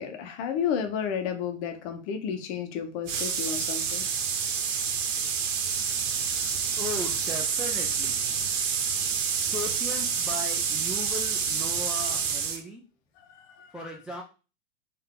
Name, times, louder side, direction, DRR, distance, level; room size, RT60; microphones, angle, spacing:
voice 1, 0.0-4.0 13.2-13.7, left 7 dB, 55° left, 6 dB, 1.0 m, -32 dB
sound 1, 3.1-12.6, right 6 dB, 70° right, 0.9 m, -28 dB
voice 2, 6.8-8.2 9.4-12.8 13.7-14.2, left 1 dB, ahead, -1 dB, 0.3 m, -37 dB
3.6 x 2.8 x 3.8 m, 0.33 s
hypercardioid pair, 110°, 38 cm